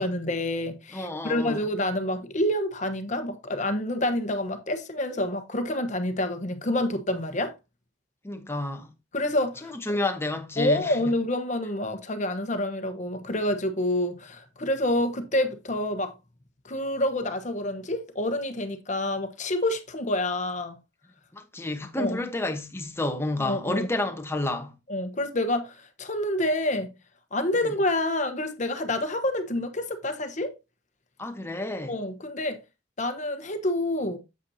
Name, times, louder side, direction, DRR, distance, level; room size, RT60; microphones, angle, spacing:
voice 1, 0.0-7.5 9.1-10.0 10.6-16.1 16.6-20.8 22.0-22.2 23.4-23.9 24.9-26.9 27.3-30.5 31.9-32.6 33.0-34.2, left 1 dB, 40° left, 1.1 m, -28 dB
voice 2, 0.9-1.6 8.2-8.9 9.6-11.0 21.3-24.7 27.6-27.7 31.2-32.0, left 2 dB, 15° left, 1.1 m, -30 dB
8.3 x 7.8 x 2.8 m
head